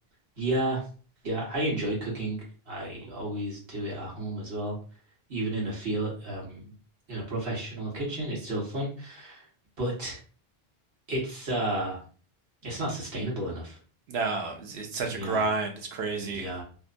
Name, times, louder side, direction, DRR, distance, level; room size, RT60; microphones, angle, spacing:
voice 1, 0.4-0.8 1.2-4.8 5.3-6.7 7.1-9.4 9.8-10.2 11.1-12.0 12.6-13.8 15.1-15.5 16.2-16.6, right 1 dB, 65° right, -3 dB, 1.2 m, -32 dB
voice 2, 14.1-16.5, right 3 dB, 85° right, 3 dB, 0.9 m, -30 dB
2.8 x 2.2 x 2.4 m, 0.39 s
omnidirectional pair, 1.0 m